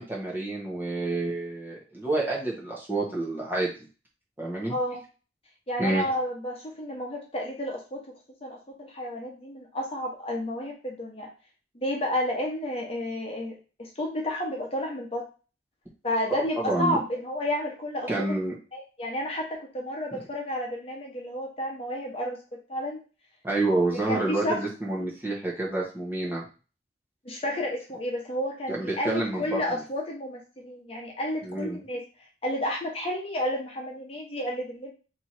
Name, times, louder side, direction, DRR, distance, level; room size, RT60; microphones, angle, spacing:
voice 1, 0.0-3.7 4.4-4.7 5.8-6.1 16.3-17.0 18.1-18.5 20.1-20.2 23.4-26.4 28.7-29.8 31.4-31.8, right 2 dB, 10° right, -4 dB, 1.1 m, -28 dB
voice 2, 4.7-5.0 5.7-8.0 8.4-11.3 11.7-13.5 13.8-15.3 16.0-18.3 18.7-22.4 22.7-23.0 24.1-24.6 27.2-32.0 32.4-34.9, left 1 dB, 35° left, -1 dB, 1.1 m, -31 dB
3.4 x 3.0 x 4.4 m, 0.34 s
head